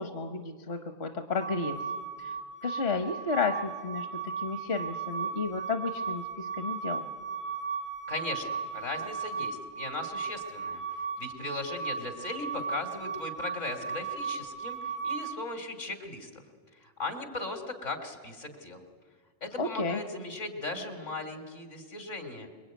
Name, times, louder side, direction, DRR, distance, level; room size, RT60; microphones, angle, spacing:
voice 1, 0.0-1.8 2.2-2.3 2.6-4.1 4.4-7.1 19.6-20.0, left 4 dB, 55° left, 6 dB, 1.4 m, -32 dB
sound 1, 1.3-15.3, right 6 dB, 15° right, 0.5 m, -36 dB
voice 2, 8.1-10.8 11.2-16.4 16.8-18.9 19.4-22.5, left 2 dB, 80° left, 6 dB, 3.6 m, -38 dB
25.5 x 22.5 x 9.4 m, 1.5 s
omnidirectional pair, 1.3 m